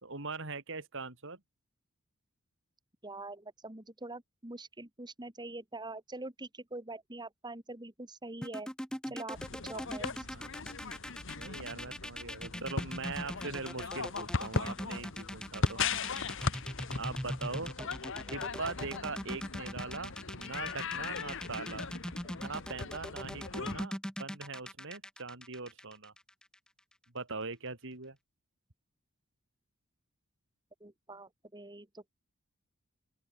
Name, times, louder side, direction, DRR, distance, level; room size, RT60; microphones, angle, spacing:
voice 1, 0.0-1.4 10.3-10.5 11.3-15.8 17.0-17.7 18.3-21.9 22.4-26.1 27.1-28.2, right 4 dB, 60° right, 3.3 m, -41 dB
voice 2, 3.0-8.7 9.1-10.3 17.8-17.9 18.2-18.3 30.8-32.1, right 2 dB, 20° right, 2.2 m, -44 dB
sound 1, 8.4-26.5, equal, 5° left, 3.0 m, -41 dB
sound 2, 9.3-23.9, left 4 dB, 60° left, 1.5 m, -38 dB
open air
head